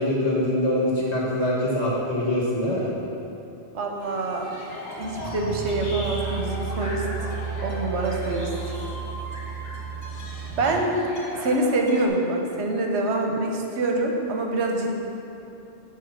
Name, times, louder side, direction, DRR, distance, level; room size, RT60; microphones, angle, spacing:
voice 1, 0.0-2.9, left 1 dB, 70° left, -6 dB, 1.9 m, -24 dB
voice 2, 3.7-4.5 5.0-7.1 7.6-8.5 10.6-11.0 11.4-14.9, right 2 dB, 75° right, 1 dB, 1.1 m, -25 dB
sound 1, 4.0-12.1, left 1 dB, 40° left, 1.1 m, -38 dB
sound 2, 5.0-10.7, right 6 dB, 15° right, 1.5 m, -33 dB
10.5 x 3.5 x 5.6 m, 2.9 s
omnidirectional pair, 1.2 m